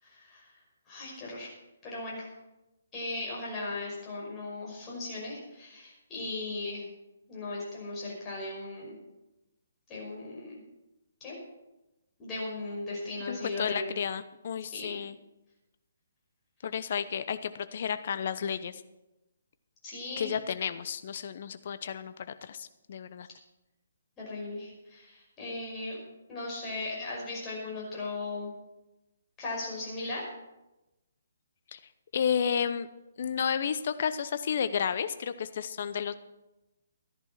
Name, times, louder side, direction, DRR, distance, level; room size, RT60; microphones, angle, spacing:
voice 1, 0.0-0.5 0.9-1.5 1.8-2.3 2.9-6.8 7.3-9.0 9.9-10.6 11.2-11.4 12.2-13.9 14.7-15.0 19.8-20.3 24.2-26.0 26.3-28.5 29.4-30.3, left 2 dB, 20° left, -5 dB, 5.7 m, -37 dB
voice 2, 13.3-15.2 16.6-18.8 20.2-23.3 31.7-31.8 32.1-32.9 33.2-36.1, left 7 dB, 45° left, 12 dB, 0.9 m, -32 dB
13.5 x 11.0 x 5.9 m, 0.98 s
figure-of-eight pair, 135°, 0 cm